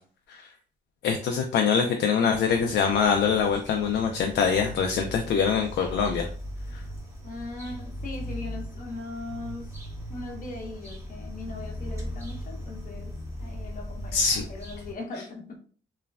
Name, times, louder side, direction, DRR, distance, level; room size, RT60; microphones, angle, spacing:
voice 1, 1.0-6.3 14.1-14.4, left 6 dB, 60° left, 3 dB, 0.4 m, -24 dB
sound 1, 2.3-14.9, equal, 15° right, 0.9 m, -38 dB
voice 2, 7.2-9.7 10.1-13.1 13.4-15.6, left 2 dB, 45° left, 0 dB, 0.9 m, -39 dB
3.1 x 2.1 x 2.3 m, 0.43 s
cardioid pair, 90°, 20 cm